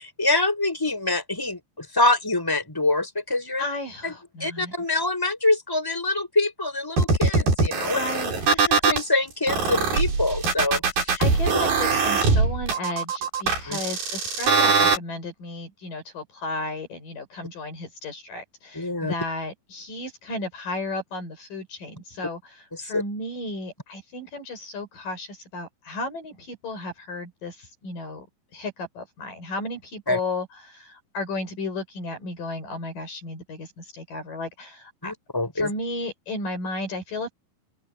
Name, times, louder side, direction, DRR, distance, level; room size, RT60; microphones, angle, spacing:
voice 1, 0.2-3.6 4.0-4.1 4.4-8.0 8.5-11.2 13.7-13.8 18.7-19.1 22.8-23.0 30.1-30.2 35.0-35.7, left 2 dB, 5° left, 7.3 m, -25 dB
voice 2, 3.6-4.7 7.9-8.8 11.2-22.4 22.8-28.3 28.5-35.1 35.6-37.3, left 2 dB, 55° left, 7.3 m, -34 dB
sound 1, 7.0-9.0 9.5-15.0, right 4 dB, 65° right, 7.3 m, -22 dB
open air
omnidirectional pair, 4.6 m